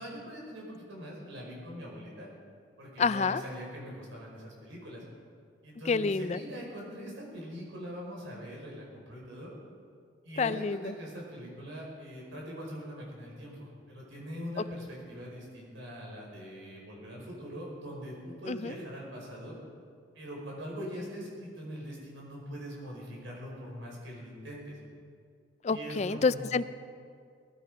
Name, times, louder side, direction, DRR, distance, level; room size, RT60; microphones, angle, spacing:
voice 1, 0.0-2.3 2.8-5.0 5.6-9.5 10.2-19.6 20.1-24.8 25.7-26.6, equal, 85° right, -3 dB, 5.2 m, -42 dB
voice 2, 3.0-3.4 5.9-6.4 10.4-10.9 18.5-18.7 25.6-26.6, left 4 dB, 35° left, 15 dB, 0.3 m, -28 dB
19.5 x 13.5 x 5.0 m, 2.2 s
head